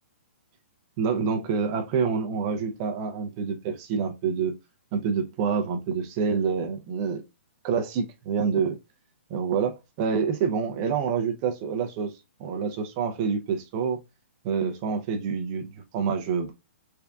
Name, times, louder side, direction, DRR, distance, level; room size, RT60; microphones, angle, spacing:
voice 1, 1.0-4.6 4.9-7.2 7.6-8.8 9.3-12.1 12.4-14.0 14.4-15.7 15.9-16.5, right 6 dB, 20° right, 0.4 m, -27 dB
3.6 x 3.4 x 2.2 m
hypercardioid pair, 175°, 7 cm